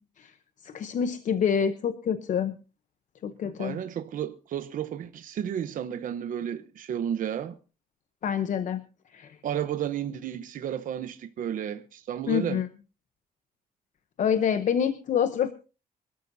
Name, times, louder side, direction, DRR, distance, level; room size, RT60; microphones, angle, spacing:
voice 1, 0.6-2.6 3.2-3.8 8.2-8.8 9.1-9.4 12.3-12.7 14.2-15.5, left 8 dB, 55° left, 0.8 m, -26 dB
voice 2, 3.6-7.6 9.4-12.6, right 9 dB, 65° right, 0.9 m, -32 dB
25.0 x 13.5 x 2.7 m
wide cardioid pair, 160°, 15 cm